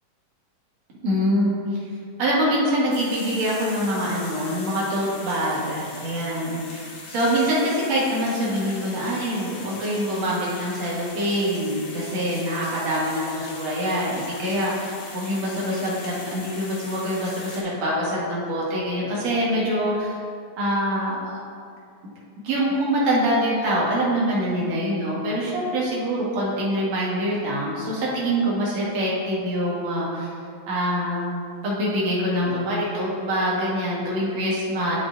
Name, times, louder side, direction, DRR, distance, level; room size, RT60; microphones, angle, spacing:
voice 1, 1.0-1.8 2.2-20.1 20.6-21.4 22.4-30.3 30.7-31.3 31.6-35.0, equal, 60° right, -7 dB, 2.4 m, -25 dB
sound 1, 2.9-17.6, left 3 dB, 65° left, 2.2 m, -40 dB
12.0 x 5.2 x 2.6 m, 2.4 s
omnidirectional pair, 3.9 m